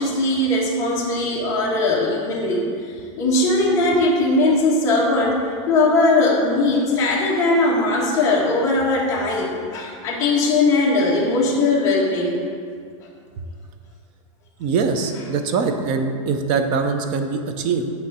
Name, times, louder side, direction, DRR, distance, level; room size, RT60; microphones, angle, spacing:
voice 1, 0.0-2.7 3.2-12.4, left 2 dB, 15° left, -6 dB, 1.2 m, -19 dB
voice 2, 14.6-17.9, right 5 dB, 30° right, 6 dB, 0.5 m, -22 dB
8.8 x 3.2 x 6.0 m, 2.3 s
supercardioid pair, 175°, 17 cm